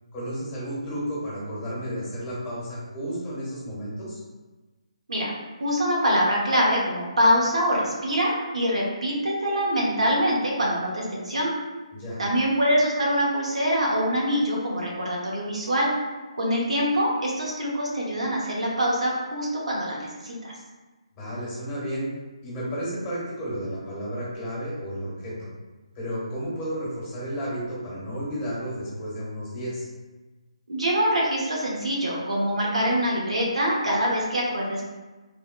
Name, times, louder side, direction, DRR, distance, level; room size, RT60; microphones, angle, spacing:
voice 1, 0.1-4.2 11.9-12.2 21.1-22.1 22.4-25.4 25.9-29.9, equal, 20° left, -7 dB, 1.2 m, -32 dB
voice 2, 5.6-11.5 12.2-15.9 16.3-20.6 30.7-34.9, equal, 80° right, -3 dB, 0.9 m, -24 dB
3.4 x 2.2 x 2.2 m, 1.2 s
figure-of-eight pair, 150°, 3 cm